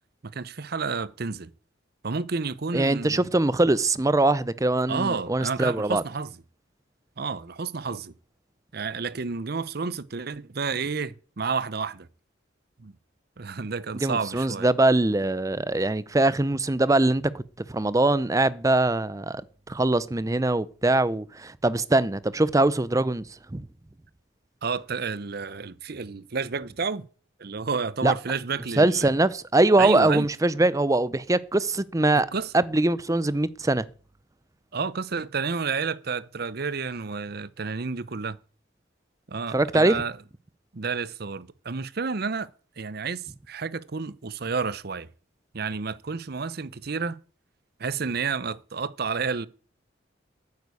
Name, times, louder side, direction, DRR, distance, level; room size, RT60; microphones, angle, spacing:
voice 1, 0.3-1.5 2.0-3.3 4.9-6.3 7.2-8.1 8.7-12.1 12.8-12.9 13.4-14.7 24.6-27.0 27.4-29.1 29.8-30.3 32.1-32.5 34.7-38.4 39.3-40.2 40.7-42.5 42.8-45.1 45.5-47.2 47.8-49.5, right 5 dB, 50° right, 0.7 m, -30 dB
voice 2, 2.7-6.0 13.9-17.4 17.7-19.4 19.7-23.2 23.5-23.6 28.0-28.1 28.8-32.3 32.5-33.8 39.5-40.0, right 2 dB, 15° right, 0.5 m, -22 dB
9.5 x 9.4 x 8.3 m
head